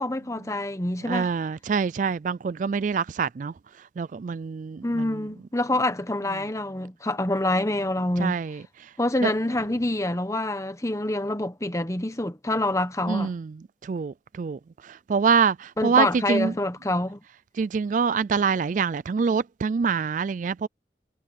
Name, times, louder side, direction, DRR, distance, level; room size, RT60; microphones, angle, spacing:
voice 1, 0.0-1.3 4.8-8.4 9.0-13.3 15.8-17.2, left 1 dB, 15° left, 1.1 m, -26 dB
voice 2, 1.1-3.5 4.0-5.0 8.2-8.6 9.2-9.3 13.1-13.5 13.8-16.5 17.6-20.7, right 5 dB, 45° right, 0.3 m, -25 dB
head